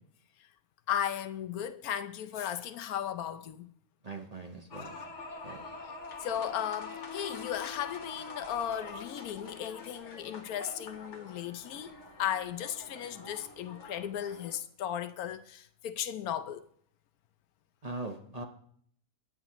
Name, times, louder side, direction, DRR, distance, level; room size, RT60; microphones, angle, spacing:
voice 1, 0.9-3.7 4.7-5.0 6.2-11.9 12.2-16.7, left 10 dB, 75° left, 1.1 m, -36 dB
voice 2, 4.0-5.0 5.4-5.7 17.8-18.4, right 2 dB, 30° right, 0.9 m, -41 dB
sound 1, 4.7-14.6, left 4 dB, 50° left, 1.6 m, -45 dB
20.0 x 7.5 x 3.0 m
omnidirectional pair, 1.6 m